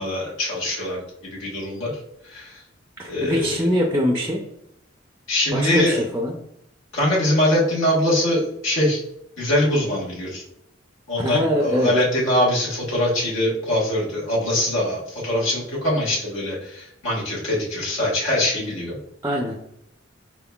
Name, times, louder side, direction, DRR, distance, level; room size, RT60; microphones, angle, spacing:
voice 1, 0.0-1.9 2.2-2.6 3.1-3.7 5.3-6.0 6.9-9.0 9.4-10.4 11.1-19.0, left 1 dB, 85° left, -5 dB, 1.3 m, -23 dB
voice 2, 3.0-4.4 5.5-6.3 11.2-11.9 19.2-19.6, equal, 15° right, 0 dB, 0.4 m, -23 dB
4.4 x 3.7 x 2.3 m, 0.76 s
head